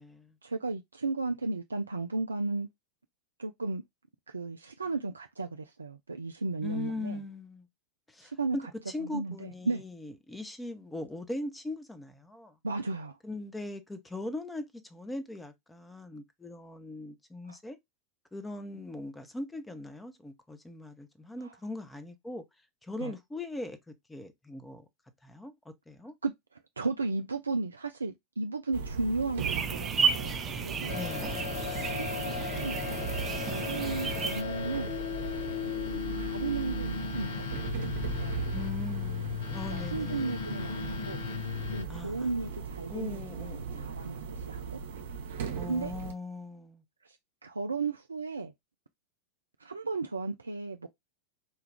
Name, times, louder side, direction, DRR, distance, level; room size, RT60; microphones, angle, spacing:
voice 1, 0.4-2.7 3.4-3.8 4.3-7.2 8.2-8.6 9.0-9.8 12.6-13.2 17.5-17.6 21.4-21.5 23.0-23.1 26.2-26.3 26.8-31.0 31.9-33.0 33.2-34.9 36.1-37.8 38.2-38.5 39.7-41.2 41.7-44.8 45.7-45.9 47.0-47.2 47.4-48.5 49.6-50.9, right 3 dB, 75° right, 0.3 m, -35 dB
voice 2, 6.6-7.7 8.1-8.6 8.9-12.6 13.2-17.8 18.3-22.4 22.8-24.9 25.2-26.1 30.9-32.0 38.5-40.3 41.9-42.5 42.9-43.9 45.5-46.8, left 2 dB, 10° left, 0.7 m, -40 dB
sound 1, 28.7-46.1, right 6 dB, 60° right, 0.8 m, -39 dB
sound 2, 29.4-34.4, right 6 dB, 20° right, 0.6 m, -33 dB
sound 3, 30.9-41.8, left 8 dB, 55° left, 0.5 m, -36 dB
4.5 x 2.3 x 3.3 m
figure-of-eight pair, 90°, 0 cm